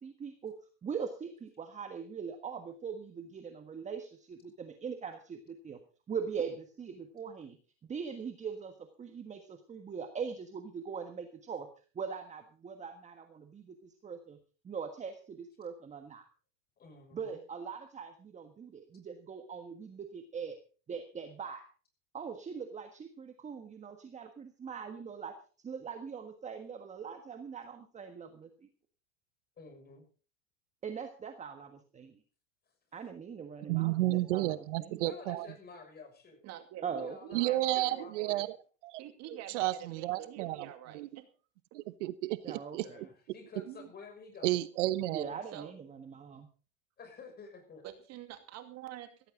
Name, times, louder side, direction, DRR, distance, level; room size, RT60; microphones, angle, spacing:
voice 1, 0.0-5.8 6.1-7.6 7.8-11.7 11.9-14.4 14.6-16.2 17.1-20.6 20.9-21.6 22.1-25.3 25.6-28.7 30.8-32.1 32.9-35.1 36.8-37.4 42.4-43.1 45.1-46.5, right 6 dB, 20° right, 1.5 m, -41 dB
voice 2, 16.8-17.4 29.6-30.0 35.0-36.4 36.9-38.5 42.8-44.5 47.0-47.8, left 4 dB, 25° left, 6.3 m, -51 dB
voice 3, 33.7-35.5 37.3-38.6 38.8-39.0 39.3-40.7 40.9-41.1 41.7-42.9 44.4-45.3, right 16 dB, 70° right, 1.0 m, -32 dB
voice 4, 36.4-38.4 39.0-41.3 43.7-43.9 45.5-45.7 47.8-49.3, right 11 dB, 45° right, 2.4 m, -47 dB
16.0 x 15.0 x 3.8 m
supercardioid pair, 125°, 38 cm